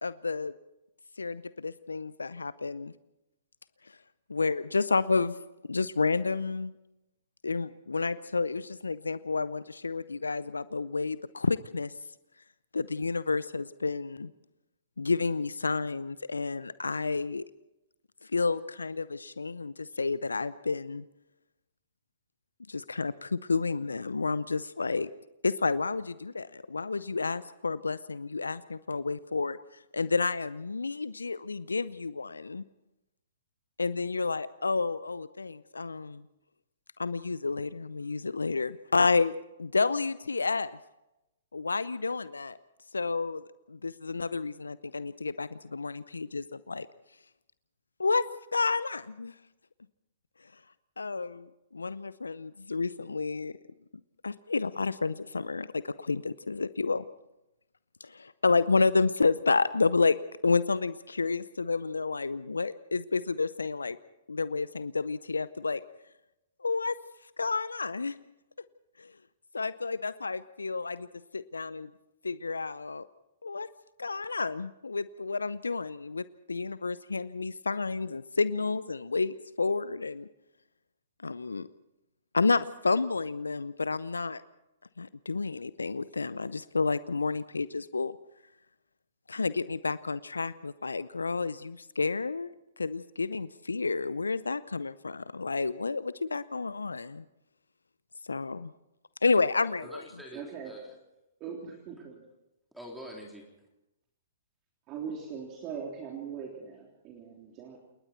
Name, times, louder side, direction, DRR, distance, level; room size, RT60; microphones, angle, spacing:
voice 1, 0.0-0.5 1.2-2.9 3.8-4.0 4.3-5.4 5.7-6.7 7.4-11.9 12.7-14.3 15.0-17.4 18.2-21.0 22.7-25.1 25.4-32.6 33.8-36.3 37.0-40.8 41.5-42.6 42.9-43.4 43.7-46.9 48.0-48.2 48.5-49.3 50.4-50.6 51.0-53.6 54.2-57.0 58.0-60.2 60.4-64.0 64.3-65.8 66.6-67.0 67.4-68.2 69.0-69.2 69.5-71.1 71.3-71.9 72.2-73.1 73.4-73.7 74.0-80.3 81.2-81.7 82.3-84.4 85.0-88.2 89.3-97.2 98.2-98.7 99.2-100.0, left 4 dB, 80° left, 17 dB, 0.6 m, -30 dB
voice 2, 99.5-101.0 102.7-103.5, equal, 5° right, -1 dB, 3.8 m, -46 dB
voice 3, 100.3-100.7 101.4-102.3 104.9-107.8, right 6 dB, 30° right, 0 dB, 3.5 m, -40 dB
29.0 x 19.5 x 4.5 m, 0.93 s
figure-of-eight pair, 120°, 0 cm